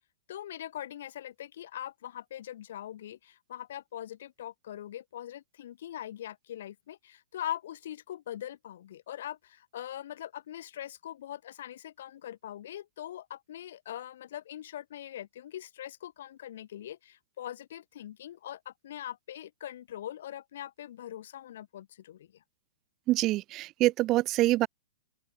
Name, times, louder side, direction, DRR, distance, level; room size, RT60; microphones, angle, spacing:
voice 1, 0.3-22.4, left 11 dB, 60° left, 5.4 m, -42 dB
voice 2, 23.1-24.7, right 17 dB, 35° right, 0.4 m, -25 dB
open air
figure-of-eight pair, 115°, 0 cm